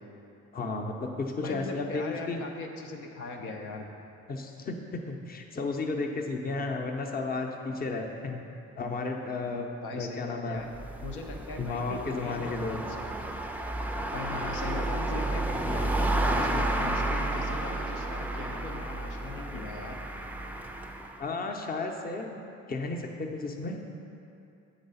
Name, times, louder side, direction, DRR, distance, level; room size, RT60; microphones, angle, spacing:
voice 1, 0.5-2.4 4.3-8.4 8.8-9.7 9.9-10.6 11.6-12.8 21.2-22.4 22.7-23.8, left 3 dB, 30° left, 3 dB, 0.6 m, -33 dB
voice 2, 1.4-3.9 9.8-10.7 11.0-13.0 14.1-20.0, left 3 dB, 90° left, 2 dB, 0.7 m, -40 dB
sound 1, 10.6-21.2, right 1 dB, 5° right, 0.4 m, -31 dB
7.3 x 3.9 x 5.5 m, 2.7 s
cardioid pair, 90°, 30 cm